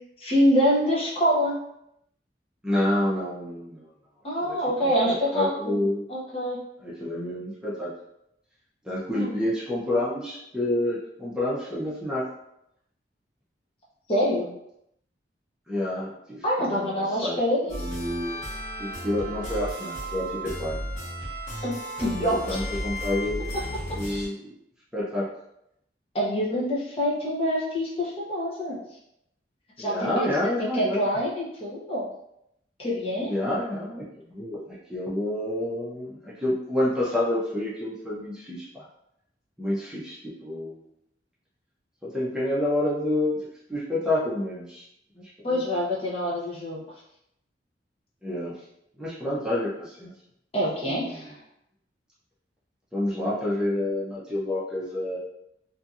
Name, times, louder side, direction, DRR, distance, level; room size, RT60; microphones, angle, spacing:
voice 1, 0.2-1.6 4.2-5.8 6.1-6.6 9.1-9.3 14.1-14.5 16.4-17.9 21.6-21.7 22.0-22.6 26.1-28.8 29.8-30.3 30.7-32.1 32.8-33.4 45.4-46.8 50.5-51.3, equal, 35° left, -5 dB, 0.7 m, -25 dB
voice 2, 2.6-3.8 4.4-4.6 5.0-6.0 6.8-7.9 8.8-12.2 15.7-17.4 17.6-18.4 18.8-20.8 22.0-22.1 22.5-23.5 23.9-24.5 24.9-25.2 29.8-31.0 33.2-34.6 34.9-38.8 39.6-40.2 40.4-40.8 42.0-43.4 43.7-44.8 45.1-45.6 48.2-48.5 49.0-50.1 50.8-51.3 52.9-55.2, left 1 dB, 5° right, -9 dB, 0.5 m, -28 dB
sound 1, 17.7-24.3, equal, 90° left, 1.1 m, -34 dB
2.7 x 2.6 x 2.4 m, 0.79 s
head